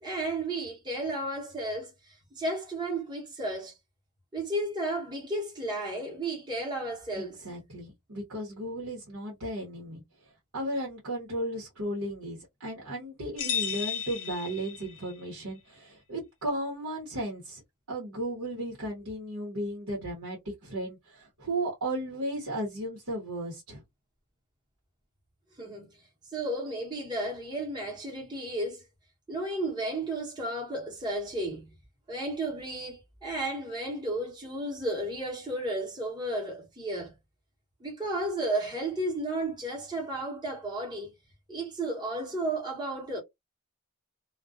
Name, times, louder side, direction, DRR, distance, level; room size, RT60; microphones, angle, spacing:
voice 1, 0.0-3.8 4.3-7.4 25.6-25.9 26.3-28.8 29.3-31.8 32.1-37.2 37.8-41.1 41.5-43.2, right 1 dB, 20° right, 0.9 m, -33 dB
voice 2, 7.1-10.0 10.5-17.6 17.9-23.8, right 1 dB, 80° right, 1.0 m, -35 dB
sound 1, 13.4-15.2, left 8 dB, 55° left, 0.7 m, -33 dB
2.4 x 2.2 x 2.4 m
head